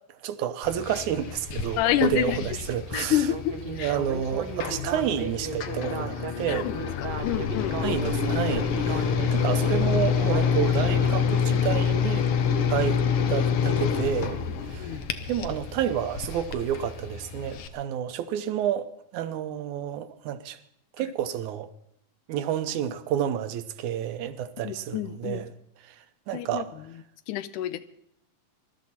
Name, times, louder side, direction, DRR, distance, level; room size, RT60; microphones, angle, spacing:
voice 1, 0.2-3.2 3.7-6.7 7.8-12.3 12.7-13.0 13.3-14.4 14.7-15.0 15.3-18.9 19.1-20.6 21.0-21.7 22.3-25.5 26.3-26.7, right 10 dB, 80° right, 2.2 m, -29 dB
sound 1, 0.6-17.7, left 6 dB, 60° left, 1.6 m, -27 dB
voice 2, 1.8-2.6 2.9-4.0 6.5-8.0 14.8-15.0 21.0-21.1 24.6-25.4 26.3-26.9 27.3-27.8, left 12 dB, 85° left, 2.3 m, -29 dB
Speech synthesizer, 2.9-11.2, right 4 dB, 60° right, 1.0 m, -36 dB
21.0 x 13.0 x 4.2 m
omnidirectional pair, 3.5 m